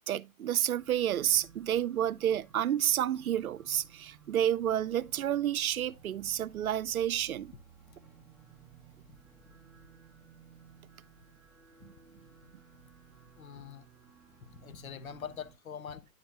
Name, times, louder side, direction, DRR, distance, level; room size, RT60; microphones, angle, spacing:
voice 1, 0.0-7.5 11.8-11.9, right 11 dB, 85° right, 0.6 m, -30 dB
sound 1, 0.7-15.5, right 7 dB, ahead, 1.2 m, -57 dB
voice 2, 13.4-13.9 14.4-16.1, left 8 dB, 80° left, 0.9 m, -44 dB
9.5 x 7.1 x 2.4 m
hypercardioid pair, 130°, 41 cm